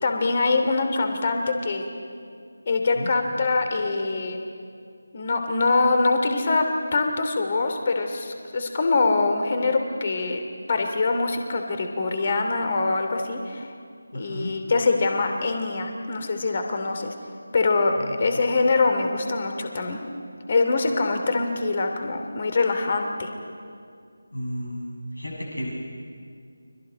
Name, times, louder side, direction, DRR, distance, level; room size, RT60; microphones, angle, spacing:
voice 1, 0.0-1.9 2.7-4.4 5.1-6.7 6.9-10.4 10.7-13.7 14.1-17.1 17.5-20.0 20.5-23.3, left 3 dB, 35° left, 5 dB, 2.8 m, -24 dB
voice 2, 14.1-14.5 18.2-18.4 24.3-25.7, equal, 75° left, -2 dB, 6.7 m, -33 dB
29.5 x 25.5 x 5.2 m, 2.3 s
figure-of-eight pair, 160°, 0 cm